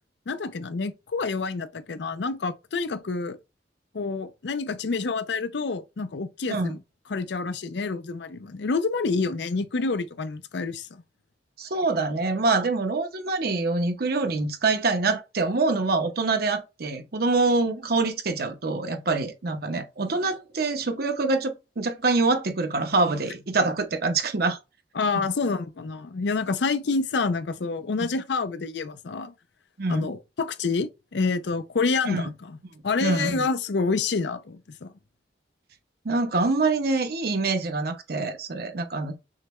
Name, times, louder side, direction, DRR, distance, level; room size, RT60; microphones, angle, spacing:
voice 1, 0.3-3.4 3.9-6.8 7.1-11.0 24.9-29.3 29.9-32.6 32.8-34.9, left 4 dB, 70° left, 0.5 m, -28 dB
voice 2, 11.6-24.6 29.8-30.1 32.1-32.3 33.0-33.4 36.0-39.2, right 3 dB, 60° right, 0.8 m, -25 dB
6.5 x 2.2 x 3.0 m
head